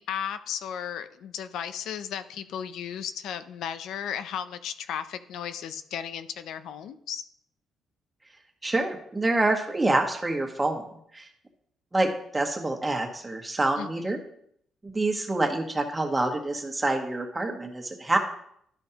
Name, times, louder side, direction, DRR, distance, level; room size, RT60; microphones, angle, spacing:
voice 1, 0.0-7.2 13.8-14.2, left 8 dB, 80° left, 11 dB, 0.5 m, -35 dB
voice 2, 8.6-10.8 11.1-11.3 11.9-14.2 14.8-18.2, right 2 dB, 20° right, 3 dB, 1.5 m, -26 dB
11.5 x 5.3 x 2.9 m, 0.69 s
cardioid pair, 90°, 0 cm